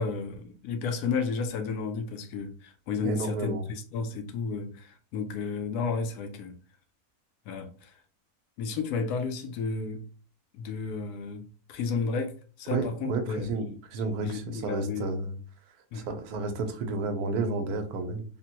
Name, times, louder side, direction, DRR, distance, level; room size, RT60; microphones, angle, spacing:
voice 1, 0.0-6.5 7.5-7.9 8.6-10.0 10.5-12.3 12.6-13.7 14.2-15.1 15.9-16.1, left 4 dB, 85° left, 1.1 m, -32 dB
voice 2, 3.0-3.6 12.7-15.4 15.9-18.2, right 3 dB, 80° right, 1.1 m, -31 dB
3.6 x 2.1 x 2.8 m
omnidirectional pair, 1.6 m